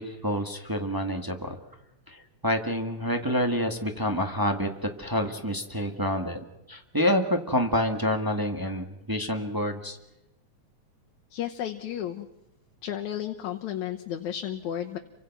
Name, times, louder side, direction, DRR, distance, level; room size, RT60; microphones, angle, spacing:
voice 1, 0.0-1.6 2.1-6.4 6.7-10.0, equal, 15° right, 4 dB, 0.7 m, -28 dB
voice 2, 11.3-12.3 12.8-15.0, left 10 dB, 75° left, 4 dB, 2.4 m, -33 dB
28.5 x 24.5 x 6.0 m, 0.97 s
omnidirectional pair, 3.4 m